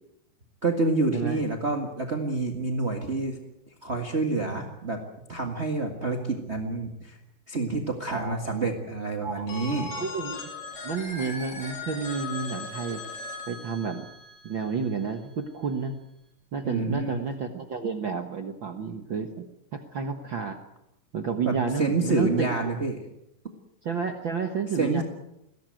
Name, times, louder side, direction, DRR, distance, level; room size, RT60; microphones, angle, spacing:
voice 1, 0.6-3.4 3.8-5.0 5.3-7.2 7.5-9.9 16.6-17.2 21.4-23.0 24.7-25.0, right 3 dB, 35° right, 3 dB, 1.0 m, -28 dB
voice 2, 8.1-8.6 9.2-9.5 10.0-10.5 10.8-13.0 13.5-14.1 14.4-16.0 16.5-20.6 21.1-22.7 23.8-25.0, right 5 dB, 70° right, 6 dB, 1.1 m, -31 dB
Telephone, 9.5-15.2, left 3 dB, 65° left, 5.4 m, -38 dB
22.0 x 17.5 x 9.1 m, 0.84 s
omnidirectional pair, 4.3 m